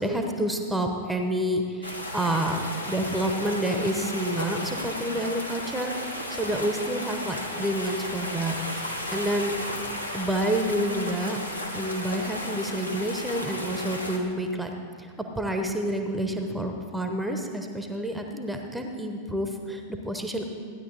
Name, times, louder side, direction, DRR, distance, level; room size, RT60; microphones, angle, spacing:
voice 1, 0.0-9.5 10.1-11.4 11.7-14.7 15.0-20.5, right 1 dB, 5° right, 4 dB, 0.9 m, -29 dB
sound 1, 1.8-14.2, left 1 dB, 85° left, 1.1 m, -34 dB
15.0 x 9.9 x 4.0 m, 2.1 s
figure-of-eight pair, 90°, 0 cm